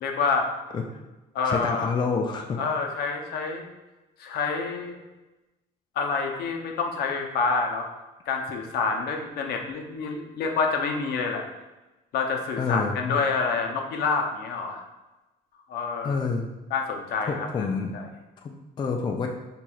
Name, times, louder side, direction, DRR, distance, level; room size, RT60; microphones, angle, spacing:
voice 1, 0.0-0.5 1.3-1.9 2.6-3.6 4.2-5.0 6.0-7.9 8.3-11.4 12.1-14.8 15.7-16.3 16.7-17.7 17.9-18.0, left 4 dB, 70° left, 2 dB, 0.6 m, -27 dB
voice 2, 1.5-2.6 12.6-13.2 16.0-16.5 17.3-18.0 18.4-19.3, left 4 dB, 25° left, 3 dB, 0.3 m, -28 dB
4.4 x 3.0 x 2.3 m, 1.1 s
cardioid pair, 110°, 17 cm